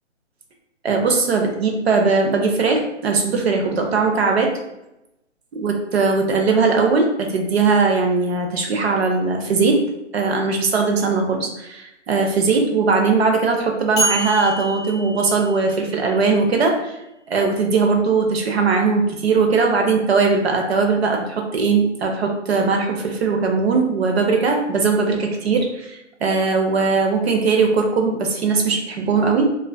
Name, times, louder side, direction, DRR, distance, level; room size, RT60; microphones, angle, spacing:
voice 1, 0.8-4.5 5.6-9.8 10.1-16.9 17.3-29.4, right 4 dB, 60° right, 2 dB, 0.6 m, -19 dB
sound 1, 14.0-16.0, right 2 dB, 25° left, 0.5 m, -26 dB
2.4 x 2.3 x 2.2 m, 0.89 s
hypercardioid pair, 165°, 36 cm